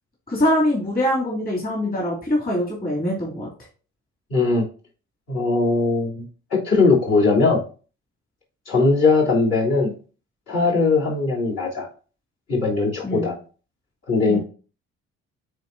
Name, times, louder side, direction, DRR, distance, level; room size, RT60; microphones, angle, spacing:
voice 1, 0.3-3.5 13.0-13.3 14.3-14.4, left 1 dB, 30° left, -4 dB, 2.8 m, -23 dB
voice 2, 4.3-4.6 5.3-6.2 6.5-7.6 8.7-9.9 10.5-11.9 12.5-13.4 14.1-14.4, left 3 dB, 55° left, -6 dB, 3.2 m, -19 dB
9.1 x 3.8 x 2.7 m, 0.38 s
cardioid pair, 90°, 30 cm